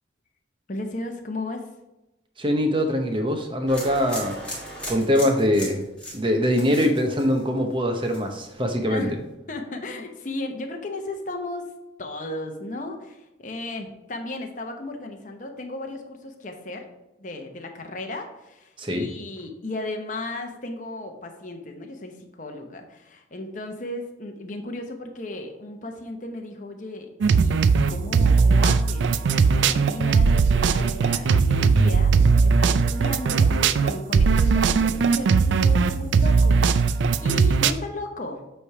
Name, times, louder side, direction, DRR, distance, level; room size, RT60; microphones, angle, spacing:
voice 1, 0.7-1.7 8.9-9.2 9.5-11.7 12.0-16.9 17.2-36.6 37.2-38.4, left 2 dB, 40° left, 4 dB, 0.8 m, -35 dB
voice 2, 2.4-4.4 4.9-5.9 6.1-9.1 18.8-19.1, equal, 25° right, 4 dB, 0.8 m, -23 dB
sound 1, 3.7-7.7 8.0-8.5, equal, 5° left, 1.5 m, -37 dB
sound 2, 27.2-37.7, right 5 dB, 70° right, 0.3 m, -19 dB
8.3 x 3.3 x 4.8 m, 0.95 s
head